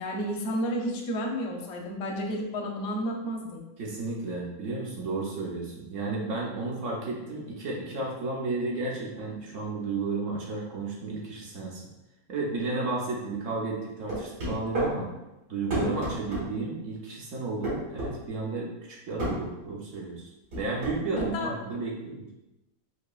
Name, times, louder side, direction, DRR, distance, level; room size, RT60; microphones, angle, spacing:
voice 1, 0.0-3.6 21.3-21.5, equal, 65° left, 1 dB, 0.7 m, -31 dB
voice 2, 3.8-11.9 12.3-15.1 15.5-22.3, right 3 dB, 60° right, -3 dB, 0.9 m, -33 dB
sound 1, 14.1-14.9 15.7-16.5 17.6-18.1 19.2-19.4 20.5-21.3, right 1 dB, 75° right, 2.1 m, -30 dB
4.7 x 2.7 x 2.3 m, 0.97 s
omnidirectional pair, 1.8 m